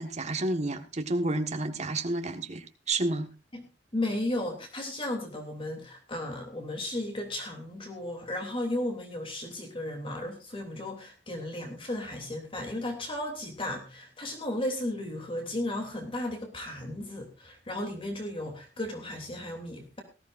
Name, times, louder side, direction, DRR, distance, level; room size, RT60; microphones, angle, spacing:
voice 1, 0.0-3.3, right 2 dB, 40° right, 7 dB, 1.5 m, -30 dB
voice 2, 3.9-20.0, left 1 dB, 30° left, 3 dB, 3.0 m, -34 dB
19.0 x 15.0 x 2.6 m, 0.30 s
head